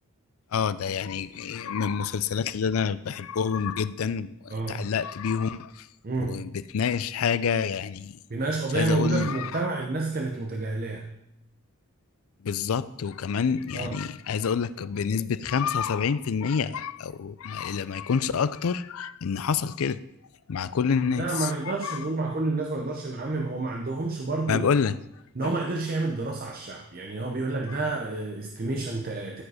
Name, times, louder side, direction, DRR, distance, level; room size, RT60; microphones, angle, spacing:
voice 1, 0.5-5.9 6.3-8.2 8.7-9.6 12.4-20.0 20.5-21.5 21.8-22.1 24.5-25.0 25.4-25.6 27.7-27.8, left 6 dB, 75° left, 16 dB, 0.4 m, -28 dB
voice 2, 4.5-4.9 6.0-6.5 8.3-11.1 13.7-14.0 21.1-24.7 25.4-29.4, right 3 dB, 40° right, 1 dB, 0.7 m, -29 dB
13.0 x 5.1 x 4.9 m, 0.87 s
head